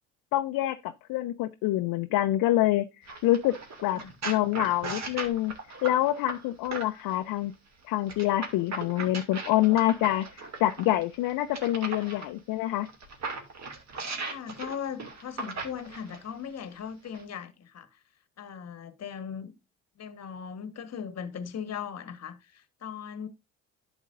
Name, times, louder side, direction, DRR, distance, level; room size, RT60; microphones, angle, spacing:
voice 1, 0.3-3.5 3.8-5.5 5.8-7.5 7.9-12.9, left 14 dB, 60° left, 0.7 m, -26 dB
sound 1, 3.1-7.2 8.1-12.3 12.8-16.3 17.1-17.2, right 3 dB, 45° right, 2.4 m, -38 dB
voice 2, 14.2-18.0 18.4-19.5 20.0-23.3, left 7 dB, 40° left, 1.4 m, -39 dB
11.0 x 7.1 x 2.6 m
hypercardioid pair, 60°, 38 cm